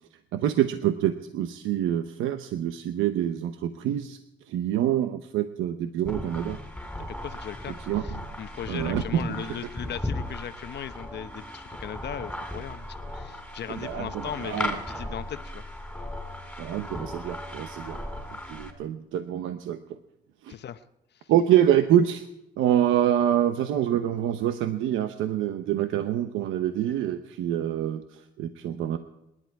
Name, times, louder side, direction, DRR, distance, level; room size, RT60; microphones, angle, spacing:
voice 1, 0.3-4.2 4.5-6.6 7.8-8.2 8.7-9.6 13.7-14.8 16.6-18.0 18.5-20.0 20.4-20.5 21.3-22.3 22.6-29.0, right 11 dB, 90° right, 9 dB, 0.9 m, -26 dB
sound 1, 6.1-18.7, left 1 dB, 5° left, 4.0 m, -37 dB
voice 2, 7.1-15.6 20.5-20.8 21.1-21.3, left 9 dB, 60° left, 12 dB, 0.9 m, -38 dB
27.5 x 11.0 x 4.7 m, 0.89 s
cardioid pair, 90°, 20 cm